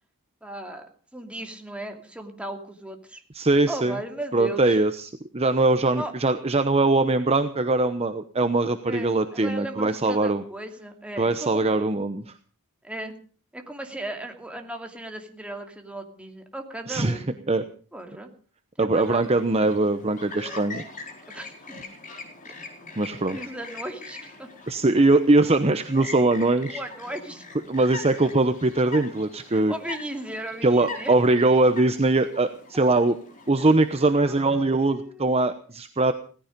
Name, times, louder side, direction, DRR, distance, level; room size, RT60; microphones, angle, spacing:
voice 1, 0.4-0.9 1.1-3.2 3.7-4.8 6.0-6.1 8.9-11.7 12.8-13.1 13.5-17.6 17.9-18.3 18.8-19.4 21.3-21.8 23.3-24.5 26.7-27.4 29.5-31.1 34.2-35.4, right 1 dB, 5° right, 3 dB, 2.6 m, -36 dB
voice 2, 3.3-4.0 4.3-10.4 11.2-12.3 16.9-17.2 17.5-17.6 18.8-20.8 23.0-23.4 24.7-26.8 27.7-29.7 30.6-33.2 33.5-36.1, right 2 dB, 30° right, 9 dB, 0.9 m, -22 dB
Chirp tweet, 19.0-34.1, left 3 dB, 35° left, 4.6 m, -42 dB
17.5 x 15.0 x 5.2 m, 0.41 s
head